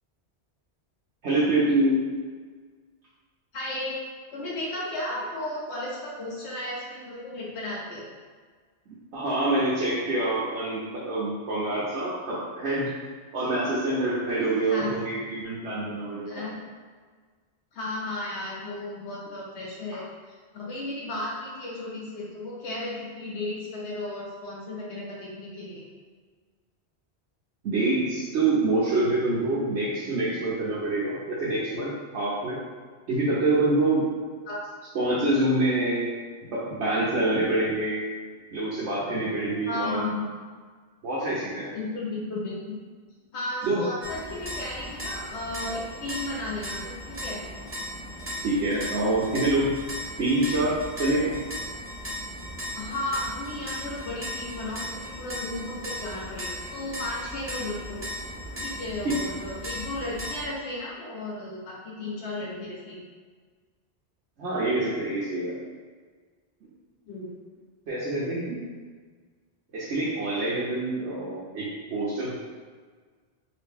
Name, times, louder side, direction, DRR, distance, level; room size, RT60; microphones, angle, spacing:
voice 1, 1.2-2.0 9.1-12.9 13.3-16.4 27.6-32.6 33.1-34.0 34.9-36.1 36.4-38.0 38.5-40.0 41.0-41.7 43.6-43.8 48.4-49.7 50.2-51.3 59.0-59.4 64.4-65.6 67.9-68.6 69.7-72.4, right 2 dB, 90° right, -8 dB, 1.1 m, -26 dB
voice 2, 3.5-3.9 4.3-8.1 14.7-14.9 16.3-16.5 17.7-25.8 34.5-34.6 39.7-40.3 41.7-42.8 43.3-47.4 52.7-58.0 58.6-63.0 67.1-67.3, left 2 dB, 80° left, -4 dB, 1.2 m, -34 dB
sound 1, 44.0-60.5, equal, 20° right, 0.3 m, -37 dB
3.0 x 2.6 x 3.5 m, 1.5 s
omnidirectional pair, 1.1 m